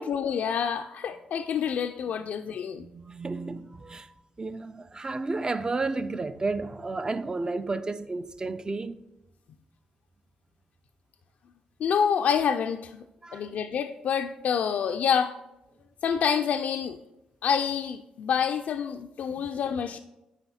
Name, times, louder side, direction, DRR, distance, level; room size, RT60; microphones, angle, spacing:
voice 1, 0.0-2.9 11.8-13.0 13.3-15.4 16.0-17.0 17.4-20.0, left 7 dB, 70° left, 0.3 m, -27 dB
voice 2, 2.8-9.0 13.2-13.5 19.3-19.5, right 3 dB, 30° right, 0.5 m, -32 dB
9.1 x 3.4 x 4.2 m
supercardioid pair, 60°, 3 cm